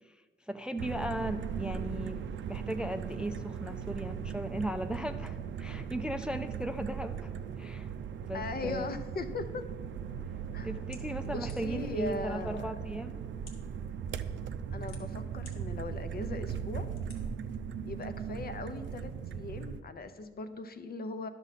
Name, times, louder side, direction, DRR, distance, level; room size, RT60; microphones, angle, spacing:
voice 1, 0.0-7.9 8.3-8.9 10.6-13.2, right 1 dB, 5° right, 8 dB, 0.3 m, -37 dB
sound 1, 0.8-19.8, right 7 dB, 70° right, 0.5 m, -38 dB
voice 2, 8.3-9.6 10.5-10.7 11.2-12.7 14.7-16.9 17.8-21.3, left 3 dB, 50° left, 9 dB, 0.7 m, -39 dB
sound 2, 10.9-11.9 12.7-12.8 13.3-13.7 14.5-15.5 16.1-16.2 16.9-17.2, left 3 dB, 85° left, 1.5 m, -52 dB
11.0 x 6.2 x 4.1 m, 1.5 s
cardioid pair, 95°, 20 cm